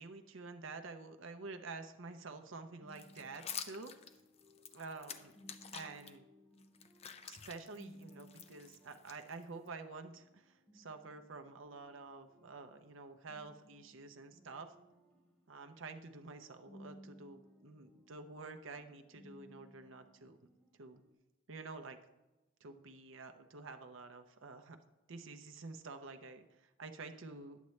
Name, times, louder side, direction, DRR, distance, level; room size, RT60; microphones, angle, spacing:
voice 1, 0.0-3.9 4.7-5.3 5.7-6.2 7.2-14.7 15.5-20.4 20.8-21.0 21.5-22.0 22.6-24.8 25.1-27.6, right 3 dB, 75° right, 7 dB, 0.7 m, -49 dB
sound 1, 2.3-21.1, equal, 5° left, 1.1 m, -62 dB
sound 2, 2.9-6.1 6.6-9.7, left 7 dB, 30° left, 0.4 m, -49 dB
10.5 x 8.2 x 3.2 m, 1.0 s
head